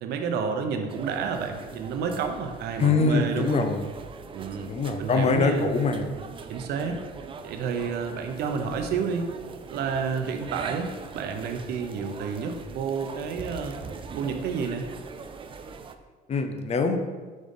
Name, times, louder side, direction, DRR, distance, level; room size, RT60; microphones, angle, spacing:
voice 1, 0.0-3.6 4.3-5.7 6.5-7.0 7.4-9.3 9.7-13.8 14.2-14.9, right 5 dB, 75° right, 6 dB, 0.7 m, -30 dB
sound 1, 0.9-15.9, right 5 dB, 30° right, 0.4 m, -42 dB
voice 2, 2.8-3.9 4.7-6.2 16.3-17.0, left 4 dB, 40° left, 7 dB, 0.6 m, -24 dB
5.3 x 3.8 x 5.2 m, 1.4 s
cardioid pair, 110°, 17 cm